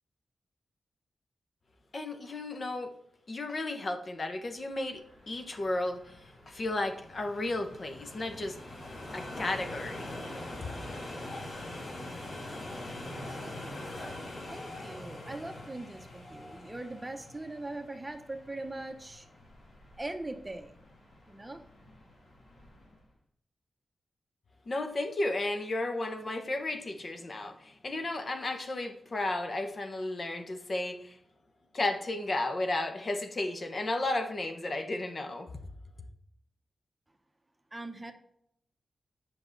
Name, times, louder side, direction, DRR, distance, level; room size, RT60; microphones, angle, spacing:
voice 1, 1.9-2.9 3.3-6.2 6.5-8.6 9.1-10.1 10.6-10.7 24.7-31.2 31.7-35.5, left 2 dB, 45° left, 6 dB, 1.0 m, -33 dB
sound 1, 4.7-23.0, left 1 dB, 65° left, 2.0 m, -44 dB
voice 2, 14.2-19.3 20.0-20.8 21.3-21.6 37.7-38.1, right 2 dB, 20° right, 5 dB, 1.0 m, -41 dB
7.9 x 6.0 x 4.0 m, 0.69 s
cardioid pair, 75°, 0 cm